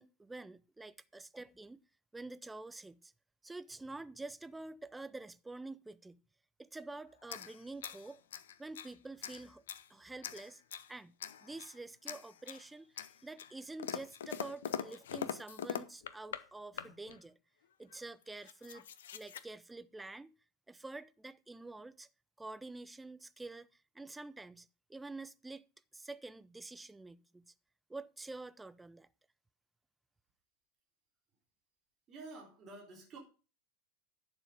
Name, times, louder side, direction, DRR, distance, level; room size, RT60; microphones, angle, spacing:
voice 1, 0.0-1.8 2.1-3.1 3.4-6.2 6.6-8.2 8.6-9.6 9.9-10.6 10.9-11.1 11.4-17.4 17.8-18.9 19.1-20.4 20.7-22.1 22.4-23.7 23.9-25.6 25.9-27.5 27.9-29.1, right 2 dB, 10° right, 0.6 m, -48 dB
sound 1, 7.2-8.9 9.2-9.9 10.2-10.9 11.2-11.8 12.1-12.6 13.0-16.4 16.7-17.2 17.9-18.0 18.2-19.4, left 9 dB, 65° left, 0.8 m, -43 dB
voice 2, 32.1-33.2, right 3 dB, 30° right, 3.7 m, -50 dB
11.0 x 7.2 x 5.2 m
figure-of-eight pair, 85°, 0 cm